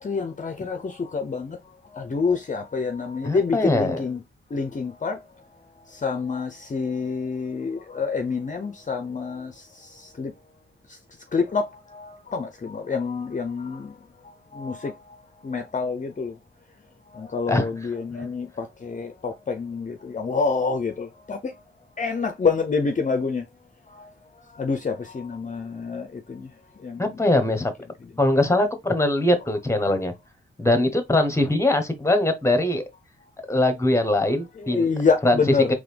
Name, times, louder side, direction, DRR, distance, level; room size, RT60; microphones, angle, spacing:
voice 1, 0.0-4.2 4.5-5.2 5.9-10.3 10.9-11.0 11.3-14.0 14.2-15.2 15.4-16.4 17.1-21.6 22.0-23.5 23.9-24.1 24.5-26.5 26.8-27.2 28.0-28.1 34.6-35.7, left 4 dB, 35° left, 0.6 m, -27 dB
voice 2, 3.2-4.0 17.5-17.7 27.0-27.7 28.2-30.1 30.6-32.8 33.5-34.9 35.2-35.4, left 1 dB, 15° left, 1.1 m, -21 dB
4.0 x 3.2 x 3.3 m
cardioid pair, 75°, 21 cm